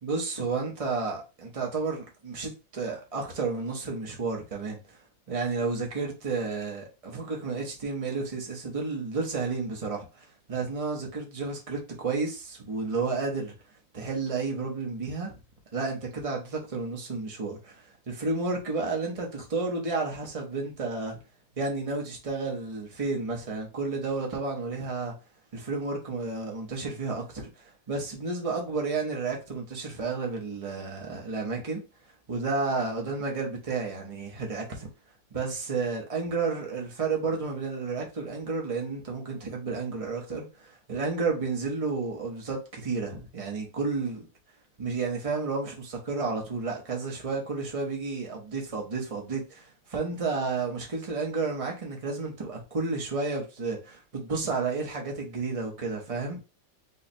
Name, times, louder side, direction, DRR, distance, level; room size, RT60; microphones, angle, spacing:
voice 1, 0.0-4.8 5.3-13.5 13.9-15.3 15.7-21.2 21.6-25.1 25.5-31.8 32.3-34.9 35.3-44.3 44.8-56.4, right 4 dB, 55° right, 0.3 m, -31 dB
5.5 x 2.2 x 2.6 m
omnidirectional pair, 2.1 m